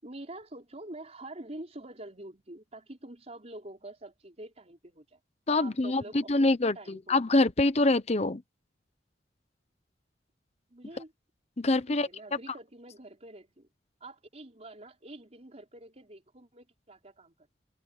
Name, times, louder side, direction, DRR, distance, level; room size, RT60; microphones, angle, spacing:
voice 1, 0.0-5.2 5.6-7.3 10.7-11.1 11.9-13.7 14.0-17.3, right 1 dB, 40° right, 4.9 m, -46 dB
voice 2, 5.5-6.7 7.1-8.4 11.6-12.1, left 2 dB, 35° left, 0.9 m, -25 dB
head